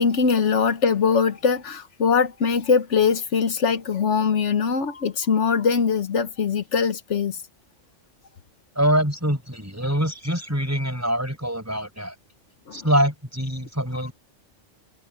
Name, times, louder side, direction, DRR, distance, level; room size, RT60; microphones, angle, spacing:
voice 1, 0.0-7.3 12.7-12.8, left 6 dB, 65° left, 1.3 m, -22 dB
voice 2, 8.8-12.1 12.7-14.1, equal, 10° right, 5.7 m, -24 dB
omnidirectional pair, 1.3 m